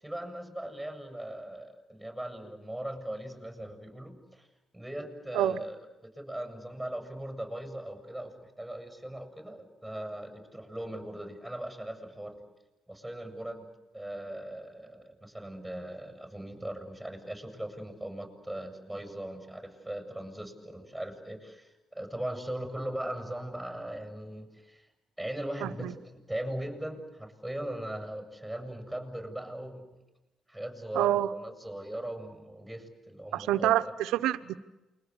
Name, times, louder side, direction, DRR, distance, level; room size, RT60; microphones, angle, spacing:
voice 1, 0.0-4.5 4.7-12.4 12.9-13.7 13.9-24.9 25.2-29.9 30.5-33.8, right 1 dB, ahead, 6 dB, 7.5 m, -39 dB
voice 2, 25.6-25.9 30.9-31.3 33.3-34.6, right 13 dB, 80° right, 12 dB, 1.0 m, -27 dB
28.5 x 23.0 x 8.1 m, 1.0 s
supercardioid pair, 60°, 0 cm